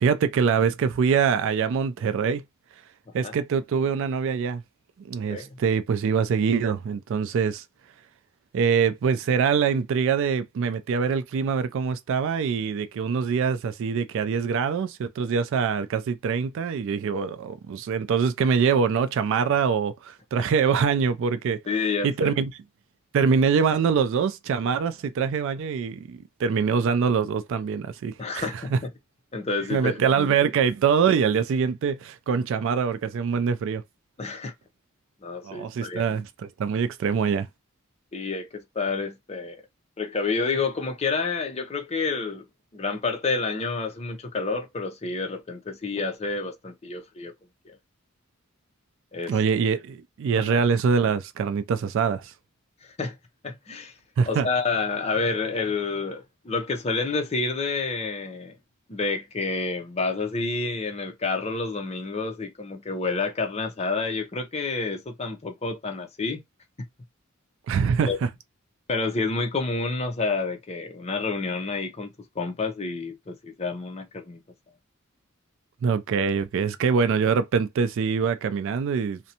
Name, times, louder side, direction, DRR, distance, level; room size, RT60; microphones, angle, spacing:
voice 1, 0.0-2.4 3.1-4.6 5.0-7.6 8.5-21.6 22.0-22.5 23.1-28.8 29.7-33.8 35.4-36.3 36.6-37.5 49.3-52.3 54.2-54.5 67.7-68.1 75.8-79.2, right 6 dB, 65° right, 0.3 m, -24 dB
voice 2, 21.7-22.3 28.2-28.9 29.3-30.5 34.2-34.5 35.2-36.0 38.1-39.6 40.0-42.5 42.7-47.3 47.6-47.8 49.1-49.4 50.4-50.6 53.0-53.2 53.4-53.9 54.3-58.5 58.9-66.4 68.0-68.2 68.9-74.4, left 4 dB, 30° left, 0.6 m, -29 dB
2.5 x 2.1 x 2.7 m
head